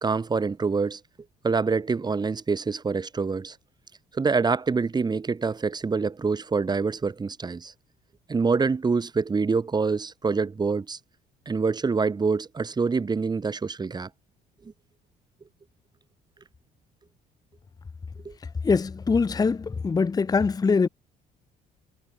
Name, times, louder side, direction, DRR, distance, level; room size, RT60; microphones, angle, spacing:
voice 1, 0.0-1.0 1.4-3.6 4.1-7.7 8.3-11.0 11.5-14.1 18.2-18.3, right 4 dB, 25° right, 2.6 m, -26 dB
voice 2, 18.6-20.9, left 4 dB, 20° left, 1.0 m, -23 dB
cardioid pair, 110°, 17 cm